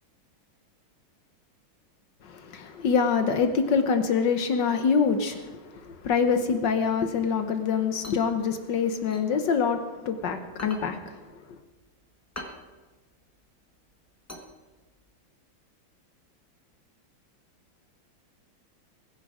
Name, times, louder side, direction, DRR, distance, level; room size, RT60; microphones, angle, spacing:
voice 1, 2.2-11.6, left 5 dB, 65° left, 7 dB, 1.5 m, -25 dB
sound 1, 8.0-10.1 10.5-15.1, left 1 dB, 10° left, 1.4 m, -44 dB
21.0 x 10.0 x 4.9 m, 1.3 s
omnidirectional pair, 2.3 m